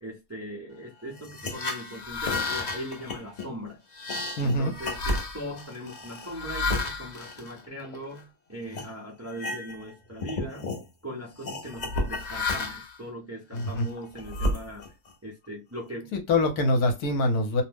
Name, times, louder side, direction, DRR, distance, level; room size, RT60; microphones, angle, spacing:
voice 1, 0.0-3.8 4.4-10.8 11.0-14.9 15.2-16.1, equal, 25° right, 0.3 m, -39 dB
sound 1, 1.2-8.2 8.7-8.9 9.3-9.9 10.2-10.8 11.4-13.0 13.5-15.1, left 2 dB, 90° left, 0.3 m, -32 dB
voice 2, 4.4-4.7 13.5-13.9 16.1-17.6, left 2 dB, 70° left, 1.2 m, -24 dB
2.7 x 2.1 x 3.3 m
omnidirectional pair, 1.7 m